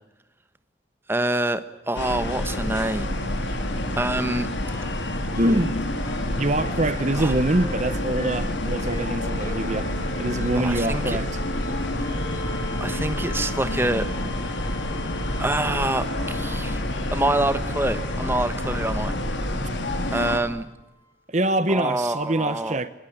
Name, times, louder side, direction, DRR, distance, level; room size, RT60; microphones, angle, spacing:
voice 1, 1.1-3.1 3.9-4.5 7.2-7.3 10.6-11.2 12.8-14.1 15.4-16.8 17.1-19.1 20.1-20.7 21.7-22.8, right 1 dB, 10° right, 1.3 m, -26 dB
sound 1, 1.9-20.4, left 1 dB, 80° left, 4.1 m, -28 dB
sound 2, 4.6-5.7 6.0-16.8 17.7-19.2 21.0-21.1, equal, 20° left, 3.6 m, -40 dB
voice 2, 5.3-5.7 6.4-9.9 10.2-11.4 21.3-22.9, right 1 dB, 40° right, 1.0 m, -24 dB
24.5 x 21.0 x 8.8 m
head